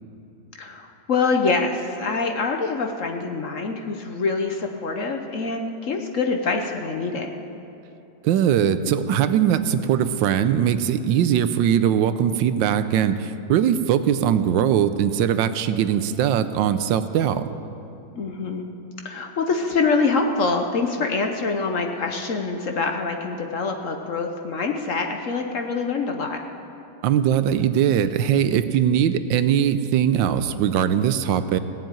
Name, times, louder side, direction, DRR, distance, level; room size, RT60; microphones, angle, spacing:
voice 1, 0.6-7.3 18.1-18.7 19.0-26.4, left 4 dB, 55° left, 4 dB, 1.0 m, -25 dB
voice 2, 8.2-17.4 27.0-31.6, right 9 dB, 85° right, 12 dB, 1.3 m, -21 dB
17.5 x 7.6 x 8.8 m, 2.9 s
omnidirectional pair, 2.0 m